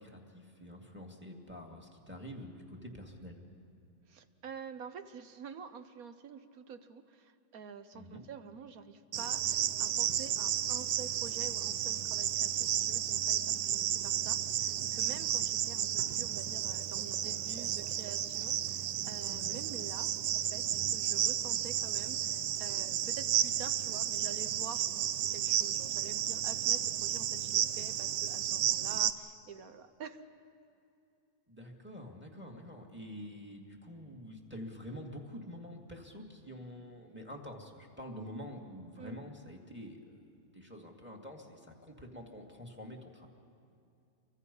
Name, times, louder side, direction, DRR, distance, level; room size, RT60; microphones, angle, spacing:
voice 1, 0.0-3.4 7.9-8.2 19.2-19.6 31.5-40.3 40.5-43.3, equal, 5° right, 2 dB, 2.2 m, -47 dB
voice 2, 4.1-20.1 20.5-20.6 20.9-24.9 25.3-30.2 39.0-39.2, right 6 dB, 60° right, 10 dB, 1.3 m, -48 dB
Cricket, 9.1-29.1, right 11 dB, 85° right, 1.3 m, -32 dB
29.5 x 24.0 x 5.5 m, 2.6 s
omnidirectional pair, 1.8 m